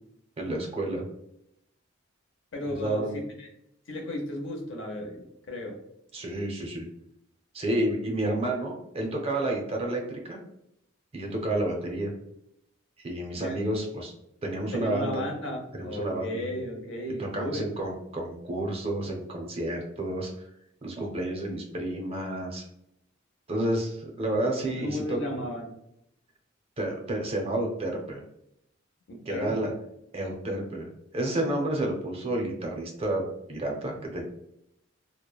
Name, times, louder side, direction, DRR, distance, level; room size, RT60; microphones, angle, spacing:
voice 1, 0.4-1.0 2.8-3.2 6.1-6.9 7.5-10.4 11.1-12.1 13.0-14.1 14.4-15.2 15.7-16.5 17.2-20.5 20.8-22.6 23.5-25.2 26.8-28.2 29.3-29.7 30.1-30.9 31.1-34.2, right 1 dB, 30° right, 1 dB, 0.5 m, -30 dB
voice 2, 2.5-3.5 3.9-5.8 13.4-13.6 14.7-17.7 24.8-25.7 29.1-29.7, left 1 dB, 75° left, 2 dB, 0.7 m, -34 dB
2.9 x 2.0 x 2.3 m, 0.78 s
head